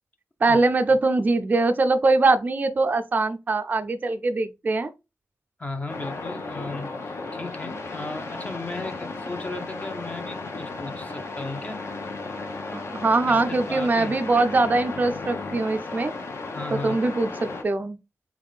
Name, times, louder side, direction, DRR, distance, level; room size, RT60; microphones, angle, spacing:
voice 1, 0.4-4.9 12.7-16.1 16.7-18.0, right 3 dB, 30° right, 0.4 m, -22 dB
voice 2, 5.6-11.8 13.3-14.1 16.5-17.0, left 2 dB, 25° left, 0.7 m, -36 dB
sound 1, 5.9-17.6, left 3 dB, 50° left, 1.0 m, -35 dB
3.6 x 3.5 x 3.9 m
wide cardioid pair, 175°, 6 cm